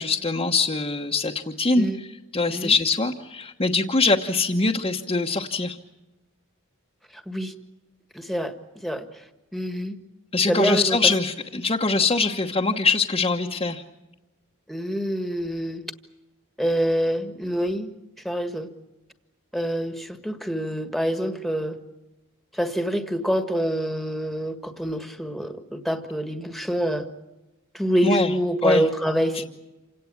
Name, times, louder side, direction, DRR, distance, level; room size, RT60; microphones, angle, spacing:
voice 1, 0.0-5.8 10.3-13.8 28.0-28.3 28.6-28.9 29.3-29.4, left 3 dB, 25° left, 0 dB, 1.1 m, -23 dB
voice 2, 7.1-7.5 8.1-8.5 8.8-9.0 9.5-10.0 10.5-11.0 14.7-15.9 16.6-17.9 18.2-18.7 19.5-21.8 22.5-27.1 27.7-29.4, equal, ahead, 8 dB, 1.6 m, -26 dB
28.0 x 17.5 x 8.7 m, 1.1 s
head